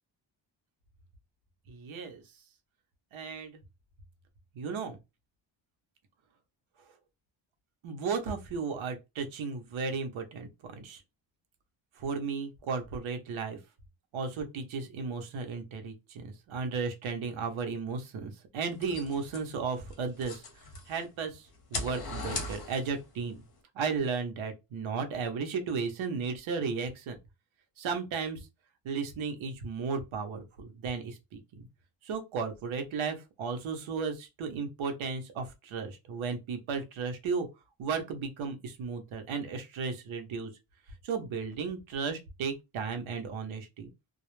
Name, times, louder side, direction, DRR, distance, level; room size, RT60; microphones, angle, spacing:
voice 1, 1.7-2.2 3.1-3.6 4.5-5.0 7.8-11.0 12.0-13.6 14.1-20.4 20.9-23.4 23.7-27.2 27.8-28.5 28.8-31.7 32.0-37.5 37.8-40.5 41.0-43.9, right 5 dB, 75° right, 0.8 m, -34 dB
sound 1, 18.7-21.1 21.5-23.1, left 3 dB, 50° left, 0.8 m, -39 dB
2.3 x 2.0 x 3.0 m
wide cardioid pair, 140°, 48 cm